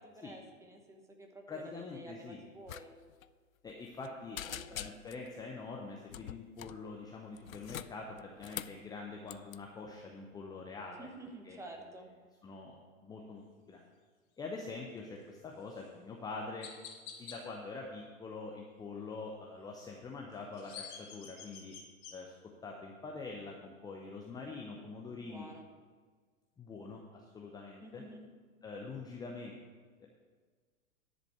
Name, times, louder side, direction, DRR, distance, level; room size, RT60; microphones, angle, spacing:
voice 1, 0.0-2.9 4.4-4.8 11.0-12.1 25.2-25.7 27.8-28.3, right 1 dB, 5° right, 3 dB, 1.0 m, -51 dB
voice 2, 1.5-2.4 3.6-11.1 11.4-11.6 12.4-13.4 13.7-13.8 14.4-16.7 17.2-21.7 22.1-22.3 22.6-25.5 26.6-28.0 28.6-29.5 30.0-30.1, left 3 dB, 10° left, 0 dB, 0.7 m, -45 dB
sound 1, 2.7-2.8 3.1-3.3 3.7-4.1 4.4-5.3 6.1-6.8 7.4-8.8 9.3-9.6, left 11 dB, 75° left, 0.5 m, -44 dB
Chirp tweet, 15.7-15.9 16.6-17.4 20.3-22.1, left 7 dB, 35° left, 1.8 m, -48 dB
10.5 x 5.1 x 7.8 m, 1.5 s
figure-of-eight pair, 100°, 42 cm